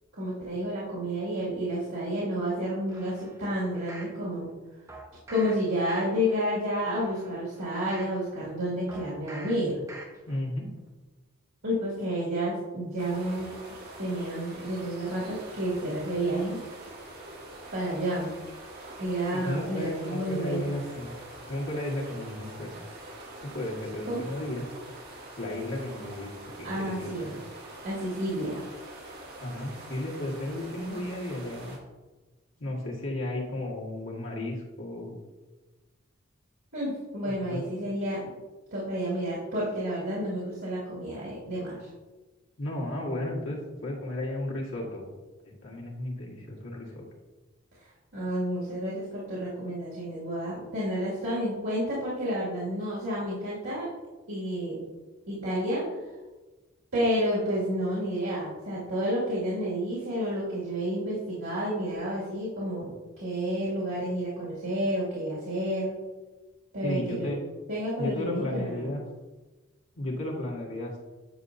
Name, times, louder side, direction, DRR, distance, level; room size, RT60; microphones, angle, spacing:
voice 1, 0.2-4.5 5.3-9.8 11.6-13.5 14.0-16.6 17.7-18.3 19.0-20.6 24.1-24.2 26.6-27.2 27.8-28.6 36.7-38.2 38.7-41.9 48.1-53.9 54.3-54.8 55.3-55.9 56.9-66.0 66.7-67.3 67.7-68.9, equal, 80° right, -8 dB, 2.2 m, -30 dB
sound 1, 2.9-4.2 4.9-5.5 5.9-6.4 6.8-8.2 8.9-9.5 9.9-10.4 10.8-10.9, right 2 dB, 15° right, 1.0 m, -46 dB
voice 2, 10.3-10.7 19.3-21.1 21.5-22.7 23.4-24.7 25.4-26.3 26.6-27.4 29.4-31.8 32.6-35.2 37.3-37.6 42.6-45.1 45.6-47.1 66.8-67.4 68.0-69.0 70.0-71.0, left 1 dB, 80° left, -3 dB, 1.9 m, -34 dB
sound 2, 13.0-31.8, right 1 dB, 50° right, 1.6 m, -45 dB
9.4 x 5.3 x 2.7 m, 1.2 s
head